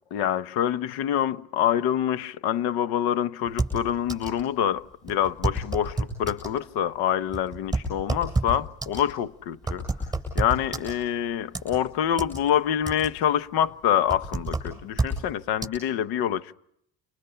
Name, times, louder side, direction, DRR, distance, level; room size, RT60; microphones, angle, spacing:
voice 1, 0.1-9.8 10.3-16.6, left 10 dB, 65° left, 1.1 m, -26 dB
sound 1, 3.5-4.4 4.7-4.8 5.1-6.6 7.1-11.2 11.5-12.4 12.7-13.3 13.6-15.2 15.6-15.7, right 2 dB, 10° right, 7.6 m, -29 dB
30.0 x 26.5 x 5.7 m
cardioid pair, 180°, 41 cm